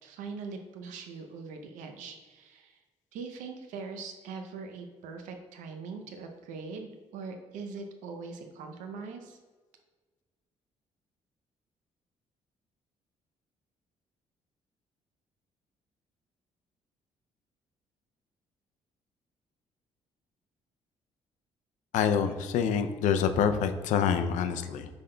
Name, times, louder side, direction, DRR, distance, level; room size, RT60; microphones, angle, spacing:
voice 1, 0.0-2.8 3.1-9.4, right 4 dB, 80° right, 5 dB, 0.6 m, -42 dB
voice 2, 21.9-24.9, left 7 dB, 75° left, 8 dB, 0.4 m, -26 dB
5.3 x 3.5 x 2.2 m, 1.4 s
supercardioid pair, 65°, 13 cm